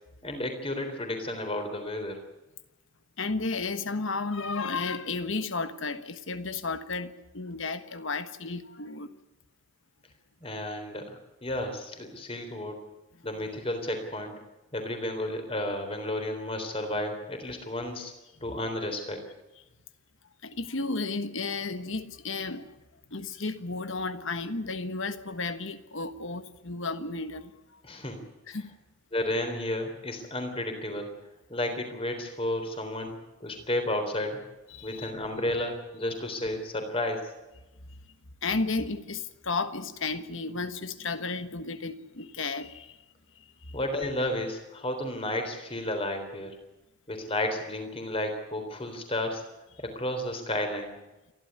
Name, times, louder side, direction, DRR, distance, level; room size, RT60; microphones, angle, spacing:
voice 1, 0.2-2.2 10.4-12.8 13.2-14.4 14.7-18.1 18.4-19.2 27.8-28.2 28.5-28.6 29.1-31.1 31.5-34.4 34.8-37.3 43.7-46.5 47.1-49.4 49.8-51.0, left 1 dB, 25° left, 6 dB, 3.7 m, -32 dB
voice 2, 3.2-9.1 20.4-22.7 23.1-27.8 28.5-28.8 34.7-35.1 38.4-43.0 43.4-43.8, left 3 dB, 65° left, 11 dB, 1.4 m, -33 dB
28.5 x 12.0 x 9.6 m, 1.0 s
head